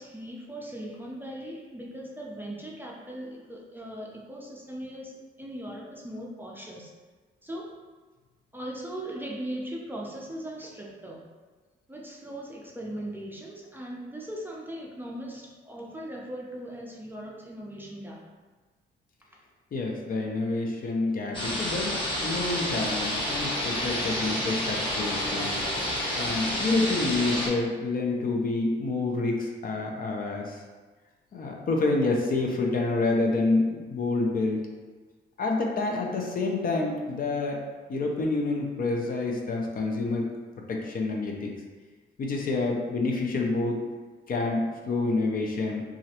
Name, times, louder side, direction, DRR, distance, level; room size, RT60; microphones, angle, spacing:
voice 1, 0.0-6.9 7.4-7.7 8.5-11.2 11.9-18.2, right 1 dB, 10° right, -3 dB, 0.5 m, -39 dB
voice 2, 19.7-25.6 26.1-30.6 31.3-34.6 35.4-37.6 37.9-40.3 40.7-41.5 42.2-43.8 44.3-45.8, left 3 dB, 45° left, 0 dB, 0.5 m, -28 dB
sound 1, 21.3-27.5, left 1 dB, 25° left, 0.9 m, -29 dB
3.0 x 2.4 x 2.8 m, 1.3 s
cardioid pair, 90°, 20 cm